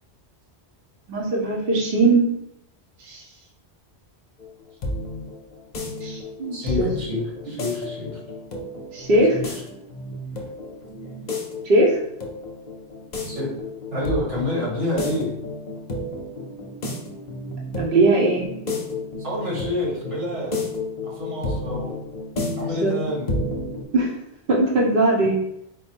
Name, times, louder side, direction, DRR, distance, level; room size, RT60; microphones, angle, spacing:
voice 1, 1.1-2.3 3.0-3.2 6.0-6.9 8.9-9.4 11.6-12.0 17.8-18.4 22.8-23.0 23.9-24.1 24.5-25.4, right 2 dB, 60° right, -2 dB, 0.9 m, -20 dB
sound 1, 4.4-23.8, left 2 dB, 45° left, 0.7 m, -32 dB
voice 2, 6.5-8.2 9.3-9.5 13.3-13.5 13.9-15.3 19.2-20.6 21.0-21.9 22.5-23.3, left 2 dB, 90° right, -4 dB, 1.7 m, -28 dB
4.5 x 2.1 x 4.4 m, 0.80 s
omnidirectional pair, 1.2 m